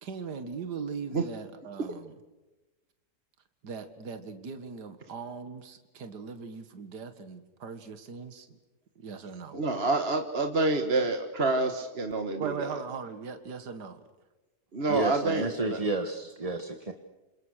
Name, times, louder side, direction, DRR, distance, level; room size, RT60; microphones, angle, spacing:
voice 1, 0.0-2.1 3.6-8.6 9.0-9.6 12.4-14.0, right 5 dB, 75° right, 9 dB, 2.3 m, -39 dB
voice 2, 9.5-12.8 14.7-15.8, right 3 dB, 40° right, 6 dB, 1.8 m, -28 dB
voice 3, 14.9-16.9, right 2 dB, 20° right, 6 dB, 1.4 m, -31 dB
28.0 x 27.5 x 6.5 m, 1.1 s
omnidirectional pair, 1.8 m